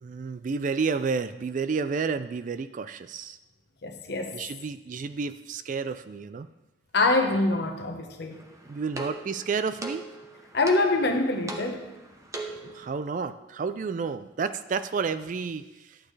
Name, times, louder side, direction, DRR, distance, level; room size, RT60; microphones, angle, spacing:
voice 1, 0.0-3.4 4.3-6.5 8.7-10.0 12.6-16.0, right 5 dB, 40° right, 13 dB, 0.3 m, -31 dB
voice 2, 3.8-4.4 6.9-8.4 10.5-11.8, left 2 dB, 55° left, 4 dB, 1.1 m, -25 dB
sound 1, 8.3-12.9, right 2 dB, 15° right, 0.8 m, -40 dB
11.5 x 8.5 x 3.3 m, 1.1 s
head